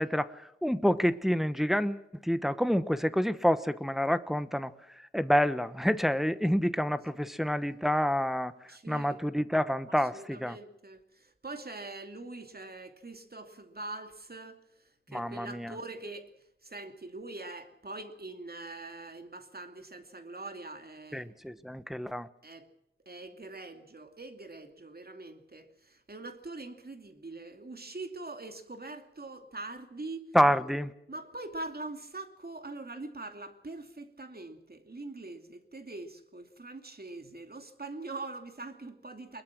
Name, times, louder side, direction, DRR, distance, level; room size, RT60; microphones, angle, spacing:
voice 1, 0.0-10.6 15.1-15.8 21.1-22.3 30.3-30.9, equal, ahead, 1.0 m, -28 dB
voice 2, 8.7-9.2 10.1-14.6 15.1-16.3 16.6-21.3 22.4-22.7 23.1-30.3 31.1-39.4, right 2 dB, 50° right, 2.7 m, -43 dB
22.0 x 21.5 x 6.2 m
wide cardioid pair, 70°, 21 cm